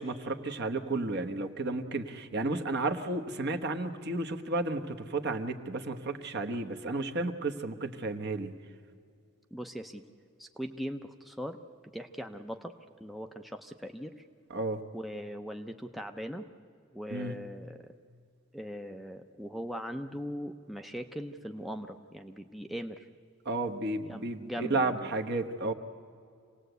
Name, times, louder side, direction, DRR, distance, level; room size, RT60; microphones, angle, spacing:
voice 1, 0.0-8.5 14.5-14.8 17.1-17.4 23.4-25.7, right 2 dB, 55° right, 5 dB, 1.2 m, -32 dB
voice 2, 9.5-10.0 10.4-11.6 11.9-12.7 13.0-14.3 14.9-16.5 16.9-17.9 18.5-23.1 24.1-25.1, equal, ahead, 5 dB, 0.6 m, -40 dB
26.5 x 18.0 x 8.1 m, 2.2 s
head